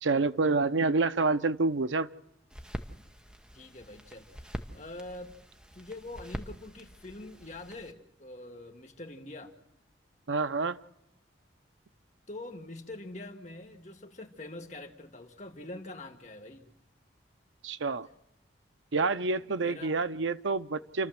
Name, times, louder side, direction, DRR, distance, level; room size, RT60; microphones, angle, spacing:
voice 1, 0.0-2.1 10.3-10.8 17.6-18.1 18.9-21.1, right 3 dB, 85° right, 0.7 m, -28 dB
sound 1, 2.5-7.9, equal, 5° right, 1.0 m, -44 dB
voice 2, 3.5-5.4 5.7-9.5 12.3-16.7 19.6-20.0, left 2 dB, 40° left, 1.8 m, -44 dB
29.0 x 12.5 x 7.7 m
head